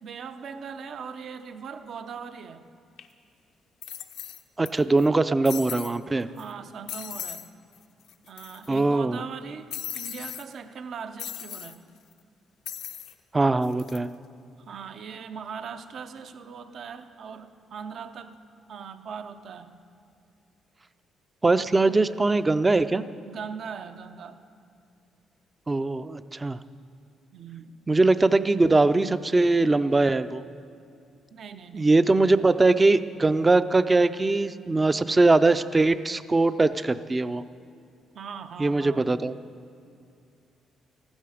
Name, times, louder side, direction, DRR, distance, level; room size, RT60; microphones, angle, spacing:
voice 1, 0.0-2.6 6.2-7.5 8.2-11.9 14.7-18.4 18.7-19.8 23.2-24.4 27.3-27.8 31.3-31.9 32.3-32.5 38.1-39.1, right 6 dB, 60° right, 9 dB, 0.6 m, -40 dB
sound 1, 3.0-3.1 3.8-4.7 5.0-5.1 5.5-6.0 6.4-6.5 6.9-7.5 7.8-7.9 8.1-8.8 9.7-10.4 11.2-11.8 12.7-13.1 13.6-14.0, left 9 dB, 85° left, 0.6 m, -37 dB
voice 2, 4.6-6.3 8.7-9.2 13.3-14.1 21.4-23.0 25.7-26.6 27.9-30.4 31.7-37.4 38.6-39.3, right 2 dB, 20° right, 13 dB, 0.4 m, -21 dB
14.5 x 12.5 x 5.0 m, 2.5 s
cardioid pair, 90°, 0 cm